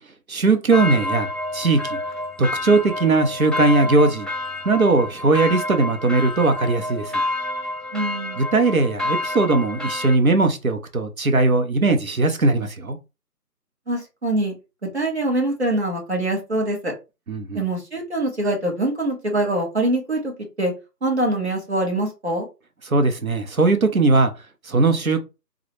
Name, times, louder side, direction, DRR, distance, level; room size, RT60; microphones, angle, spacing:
voice 1, 0.3-1.3 1.5-2.0 2.4-4.3 4.6-7.1 8.4-13.0 17.3-17.6 22.9-24.3 24.7-25.2, right 3 dB, 60° right, 0.8 m, -19 dB
sound 1, 0.7-10.2, left 2 dB, ahead, 0.4 m, -29 dB
voice 2, 7.9-8.4 13.9-14.5 14.9-16.9 17.5-20.7 21.0-22.5, right 1 dB, 40° right, 1.3 m, -24 dB
3.7 x 2.1 x 3.1 m
figure-of-eight pair, 175°, 48 cm